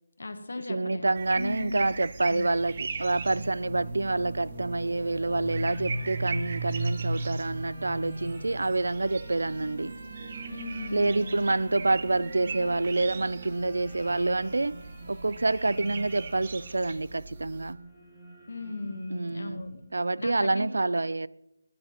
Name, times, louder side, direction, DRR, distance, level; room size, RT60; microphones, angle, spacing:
voice 1, 0.2-2.0 2.3-2.5 10.5-11.4 18.5-19.8 20.2-20.7, left 2 dB, 55° left, 1.6 m, -37 dB
voice 2, 0.7-10.0 10.9-14.8 15.1-17.8 19.1-19.6 19.9-21.3, right 2 dB, 75° right, 0.4 m, -27 dB
sound 1, 1.1-17.7, right 4 dB, 25° right, 0.5 m, -41 dB
sound 2, 2.0-19.8, right 2 dB, 10° right, 2.2 m, -39 dB
sound 3, 5.4-16.9, right 2 dB, 45° right, 1.3 m, -53 dB
16.5 x 10.5 x 4.4 m
figure-of-eight pair, 180°, 0 cm